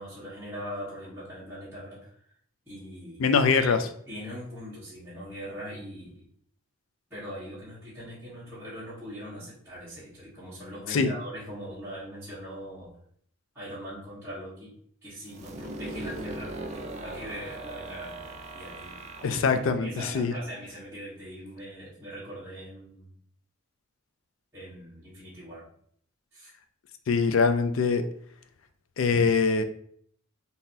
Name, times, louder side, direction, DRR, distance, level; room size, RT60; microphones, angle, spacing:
voice 1, 0.0-2.1 2.6-3.2 3.6-3.8 4.1-6.3 7.1-12.9 13.5-14.7 15.0-19.0 19.8-23.1 24.5-25.7 26.3-26.5, equal, 10° right, -13 dB, 1.3 m, -41 dB
voice 2, 3.2-3.8 10.9-11.1 19.2-20.3 27.1-28.0 29.0-29.6, left 5 dB, 70° left, 8 dB, 0.4 m, -23 dB
sound 1, 15.3-21.0, right 2 dB, 30° right, 0.4 m, -40 dB
3.8 x 2.8 x 2.7 m, 0.63 s
head